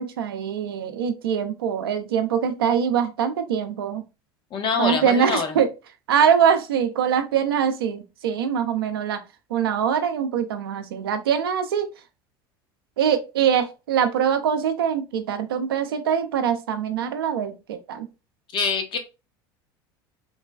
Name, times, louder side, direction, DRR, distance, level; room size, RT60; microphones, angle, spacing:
voice 1, 0.0-4.0 4.8-5.7 6.1-9.2 9.5-11.9 13.0-18.1, right 8 dB, 85° right, 0.4 m, -23 dB
voice 2, 4.5-5.6 18.5-19.0, left 5 dB, 40° left, 0.7 m, -25 dB
3.2 x 2.2 x 2.2 m
hypercardioid pair, 85°, 12 cm